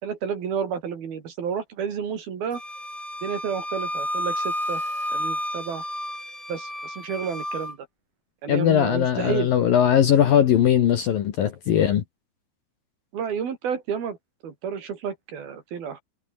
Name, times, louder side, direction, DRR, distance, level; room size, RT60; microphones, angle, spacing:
voice 1, 0.0-2.6 3.2-4.8 5.1-5.8 6.5-7.8 8.4-9.5 13.1-14.2 14.4-16.0, right 7 dB, 55° right, 4.5 m, -30 dB
Wind instrument woodwind instrument, 2.5-7.7, left 1 dB, 5° left, 6.5 m, -31 dB
voice 2, 8.5-12.0, left 9 dB, 60° left, 2.7 m, -20 dB
omnidirectional pair, 5.7 m